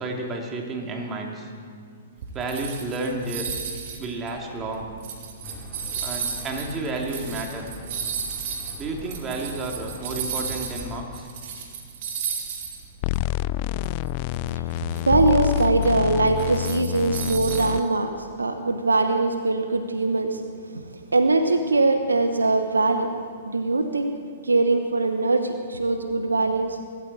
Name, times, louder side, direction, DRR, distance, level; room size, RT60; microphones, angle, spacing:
voice 1, 0.0-1.5 2.3-3.5 4.0-4.9 6.0-7.7 8.8-11.3, right 2 dB, 25° right, 1 dB, 2.7 m, -31 dB
sound 1, 2.2-10.9 11.1-12.9 13.1-13.3 13.8-17.8, right 6 dB, 50° right, 2.6 m, -34 dB
sound 2, 5.4-11.0, equal, 5° right, 2.8 m, -42 dB
sound 3, 13.0-17.8, left 13 dB, 40° left, 0.3 m, -27 dB
voice 2, 14.5-23.2 23.5-24.1 24.4-26.8, right 3 dB, 85° right, 7 dB, 1.0 m, -22 dB
23.0 x 13.5 x 4.2 m, 2.3 s
figure-of-eight pair, 115°, 0 cm